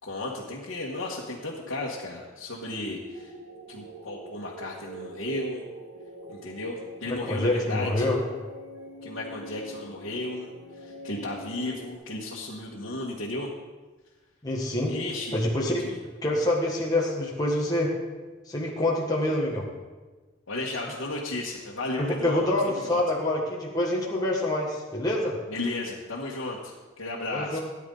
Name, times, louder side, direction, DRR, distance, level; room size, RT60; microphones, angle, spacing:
voice 1, 0.0-3.3 3.7-5.6 6.3-8.1 9.0-13.5 14.9-15.4 15.8-16.0 20.5-23.0 25.5-27.6, left 2 dB, 75° left, -6 dB, 1.7 m, -34 dB
sound 1, 3.0-11.9, right 2 dB, 55° right, 1.9 m, -44 dB
voice 2, 7.1-8.2 14.4-14.9 15.3-15.8 16.2-17.9 18.5-19.7 22.0-25.4 27.3-27.6, left 1 dB, 20° left, -3 dB, 1.7 m, -26 dB
18.0 x 10.0 x 4.0 m, 1.3 s
head